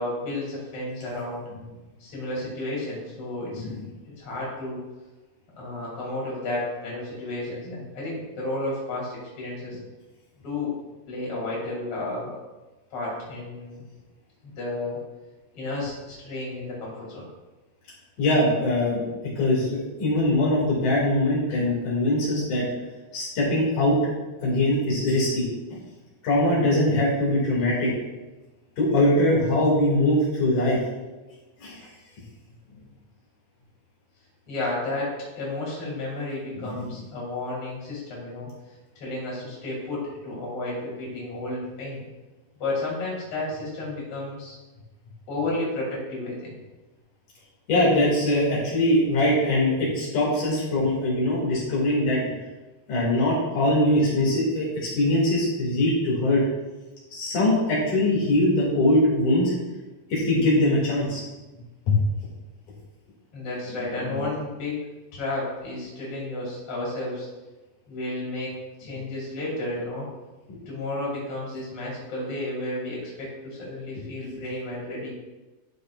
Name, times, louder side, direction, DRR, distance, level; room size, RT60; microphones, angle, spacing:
voice 1, 0.0-1.4 2.0-3.7 4.1-4.8 5.6-9.8 10.4-10.7 11.1-12.4 12.9-13.9 14.4-15.0 15.5-17.3 34.5-38.5 39.0-42.1 42.6-44.6 45.3-46.6 63.3-64.8 65.1-67.3 67.9-68.5 68.8-70.1 70.7-75.1, left 2 dB, 50° left, -5 dB, 3.6 m, -32 dB
voice 2, 18.2-22.7 23.1-24.0 24.4-25.8 26.2-27.9 28.8-30.8 31.6-31.8 36.6-36.9 47.7-52.2 52.9-56.4 57.1-59.5 60.1-61.2 61.9-62.0 70.5-70.6, left 1 dB, 80° left, -6 dB, 3.6 m, -22 dB
11.5 x 6.6 x 2.4 m, 1.2 s
omnidirectional pair, 3.5 m